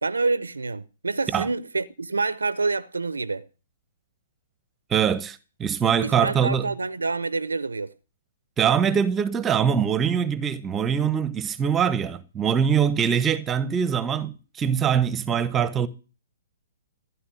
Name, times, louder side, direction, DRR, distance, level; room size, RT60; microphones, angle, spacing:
voice 1, 0.0-3.5 6.0-7.9, right 3 dB, 90° right, 0.7 m, -27 dB
voice 2, 4.9-6.7 8.6-15.9, right 7 dB, 20° right, 1.1 m, -23 dB
15.5 x 11.0 x 6.4 m
hypercardioid pair, 130°, 0 cm